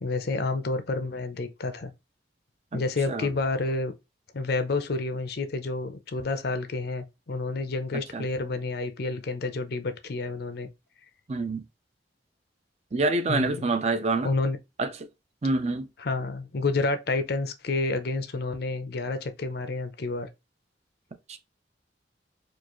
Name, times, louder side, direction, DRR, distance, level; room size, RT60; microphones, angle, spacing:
voice 1, 0.0-1.9 2.7-3.9 4.3-10.7 13.3-13.7 14.2-14.6 16.0-20.3, left 3 dB, 60° left, 0.6 m, -29 dB
voice 2, 2.7-3.3 7.9-8.3 11.3-11.6 12.9-14.3 14.8-15.1 15.4-15.9 21.3-21.4, right 3 dB, 35° right, 0.5 m, -27 dB
4.5 x 2.4 x 3.0 m
head